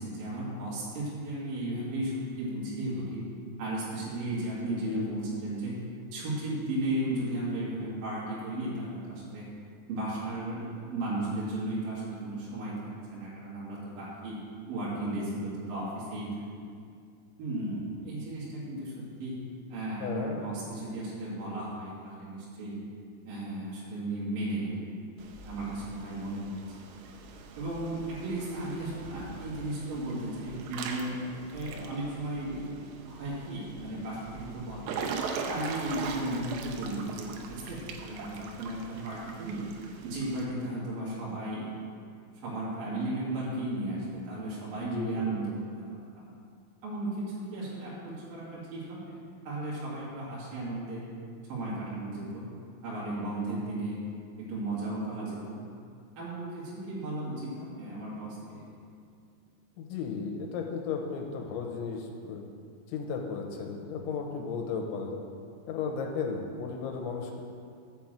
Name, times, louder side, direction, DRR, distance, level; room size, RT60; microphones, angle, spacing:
voice 1, 0.0-3.3 3.6-5.8 6.1-9.5 9.9-12.8 13.1-14.4 14.7-16.7 17.4-19.4 19.7-22.8 23.3-25.0 25.4-26.6 27.6-31.1 31.5-35.0 35.5-39.6 40.0-41.7 42.4-45.5 45.9-46.3 46.8-49.0 49.4-51.0 51.5-52.5 52.8-54.0 54.4-55.6 56.2-58.6, right 1 dB, 55° right, -8 dB, 3.1 m, -35 dB
voice 2, 4.7-5.2 20.0-20.4 44.8-45.3 59.8-62.4 62.9-65.2 65.7-67.4, left 5 dB, 80° left, 2 dB, 3.1 m, -35 dB
Water / Splash splatter / Drip, 25.2-40.5, right 5 dB, 85° right, 3.1 m, -41 dB
7.1 x 5.9 x 7.3 m, 2.3 s
omnidirectional pair, 5.6 m